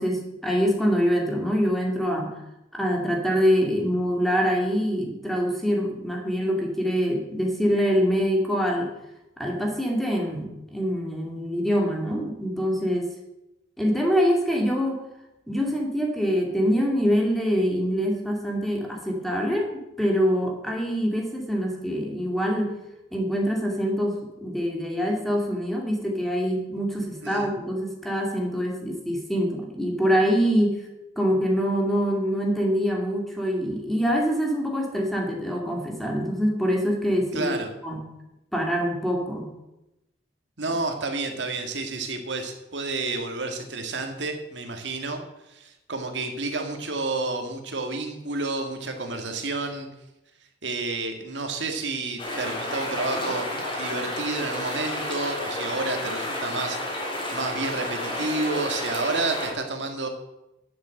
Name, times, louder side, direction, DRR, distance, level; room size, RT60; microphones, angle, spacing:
voice 1, 0.0-2.3 2.7-8.9 9.4-13.1 13.8-15.0 15.5-22.8 23.1-30.8 31.2-37.5 37.8-38.0 38.5-39.5, equal, ahead, 0 dB, 2.4 m, -25 dB
voice 2, 37.3-37.7 40.6-45.2 45.5-49.9 50.6-53.5 53.8-60.1, right 3 dB, 85° right, 4 dB, 2.0 m, -30 dB
sound 1, 52.2-59.5, left 1 dB, 30° left, 3.5 m, -31 dB
11.0 x 7.6 x 7.7 m, 0.93 s
head